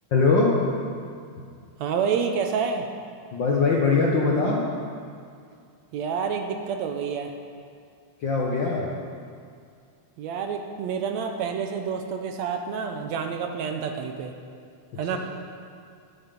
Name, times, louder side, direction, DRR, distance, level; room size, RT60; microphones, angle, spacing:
voice 1, 0.1-0.5 3.3-4.6 8.2-8.9, left 4 dB, 60° left, -3 dB, 1.2 m, -21 dB
voice 2, 1.8-2.9 5.9-7.3 10.2-14.3 15.0-15.2, right 6 dB, 75° right, 5 dB, 1.8 m, -28 dB
13.0 x 11.0 x 5.2 m, 2.3 s
omnidirectional pair, 3.5 m